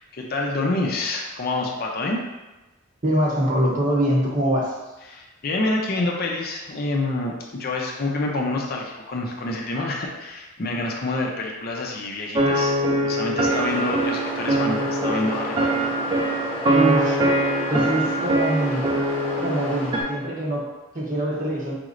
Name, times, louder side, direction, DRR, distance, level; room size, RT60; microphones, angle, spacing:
voice 1, 0.0-2.2 5.1-12.8 13.0-15.9, left 2 dB, 45° left, 0 dB, 0.5 m, -27 dB
voice 2, 3.0-4.8 16.7-17.2 17.7-18.9 19.4-21.7, equal, 40° right, -3 dB, 0.8 m, -24 dB
sound 1, 12.4-20.0, right 1 dB, 20° right, 0.3 m, -23 dB
sound 2, 13.5-20.0, left 1 dB, 5° left, 0.7 m, -33 dB
4.9 x 3.1 x 2.5 m, 1.1 s
head